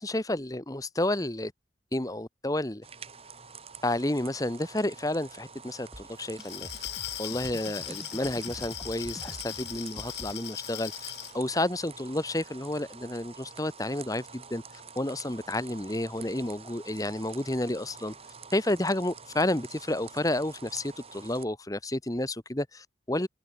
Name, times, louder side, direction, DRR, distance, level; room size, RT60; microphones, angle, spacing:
voice 1, 0.0-1.5 1.9-2.8 3.8-6.7 7.2-18.1 18.5-23.3, left 1 dB, 20° left, 1.2 m, -31 dB
sound 1, 2.8-21.4, right 6 dB, 35° right, 3.6 m, -48 dB
sound 2, 5.9-10.3, equal, ahead, 4.2 m, -45 dB
Glass, 6.3-11.4, left 14 dB, 70° left, 1.6 m, -39 dB
head